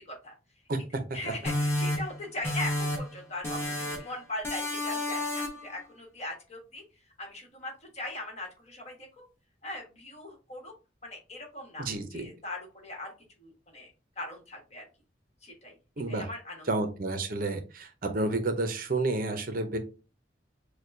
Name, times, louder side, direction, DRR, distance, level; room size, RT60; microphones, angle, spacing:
voice 1, 1.1-6.8 7.2-9.0 9.6-10.7 11.0-13.1 13.4-13.9 14.1-14.8 15.4-15.7 16.1-16.7, left 1 dB, 35° left, 0 dB, 1.4 m, -40 dB
sound 1, 1.5-3.2 3.4-4.1 4.4-5.7, left 1 dB, 15° left, 1.2 m, -31 dB
voice 2, 11.8-12.3 16.0-16.3 16.7-19.8, right 2 dB, 50° right, 7 dB, 0.6 m, -30 dB
6.4 x 2.2 x 2.6 m, 0.32 s
head